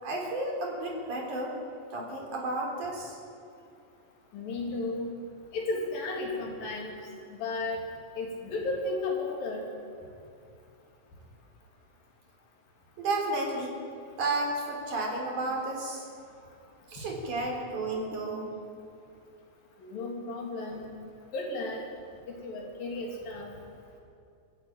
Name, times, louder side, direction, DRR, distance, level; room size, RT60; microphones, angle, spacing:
voice 1, 0.0-1.6 1.9-3.2 13.0-13.8 14.2-16.1 16.9-18.5, right 2 dB, 60° right, -1 dB, 5.2 m, -32 dB
voice 2, 4.3-5.1 5.5-6.9 7.3-7.8 8.2-9.6 19.8-20.9 21.3-21.8 22.3-23.5, left 2 dB, 85° left, -1 dB, 4.8 m, -33 dB
28.5 x 11.5 x 9.0 m, 2.6 s
omnidirectional pair, 4.0 m